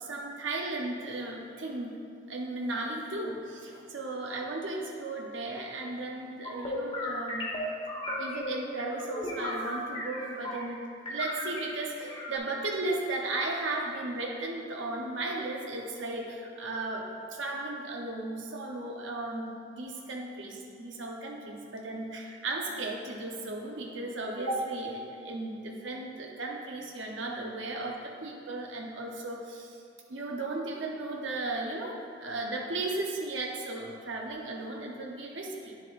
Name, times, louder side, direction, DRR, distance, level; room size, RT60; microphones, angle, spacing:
voice 1, 0.0-2.0 2.3-7.5 8.2-10.8 11.1-29.8 30.1-35.7, right 2 dB, 75° right, -1 dB, 0.8 m, -35 dB
sound 1, 6.4-10.8 11.1-12.4, left 1 dB, 30° left, 1.1 m, -35 dB
10.0 x 7.4 x 2.5 m, 2.4 s
head